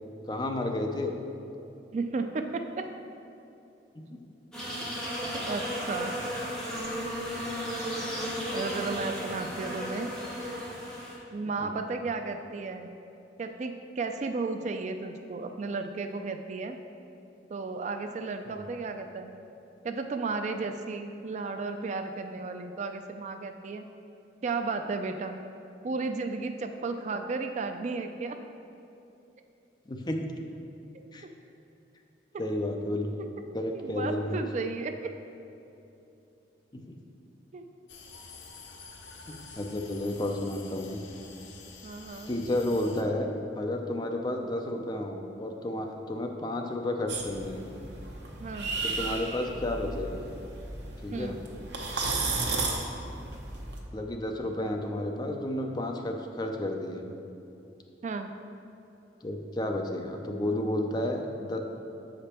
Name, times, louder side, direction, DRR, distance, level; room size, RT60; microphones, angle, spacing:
voice 1, 0.3-1.2 4.0-4.2 11.6-11.9 29.9-30.3 31.1-31.3 32.4-33.3 33.5-34.4 36.7-37.1 39.3-41.0 42.3-47.7 48.8-50.2 51.0-51.4 53.9-57.1 59.2-61.6, left 1 dB, 25° left, 3 dB, 0.5 m, -32 dB
voice 2, 1.9-2.9 4.8-4.9 5.3-6.1 8.5-10.1 11.3-13.0 13.4-16.8 17.5-19.3 19.8-23.9 24.4-25.4 25.8-28.4 33.7-35.1 37.5-37.7 41.8-42.4 48.4-48.8 51.1-51.4 58.0-58.3, right 3 dB, 40° right, 7 dB, 0.3 m, -34 dB
sound 1, 4.5-11.1, equal, 5° left, 1.5 m, -34 dB
sound 2, 37.9-43.0, left 4 dB, 85° left, 0.7 m, -48 dB
sound 3, 47.1-53.8, right 3 dB, 70° right, 0.9 m, -34 dB
6.9 x 5.1 x 4.3 m, 2.9 s
head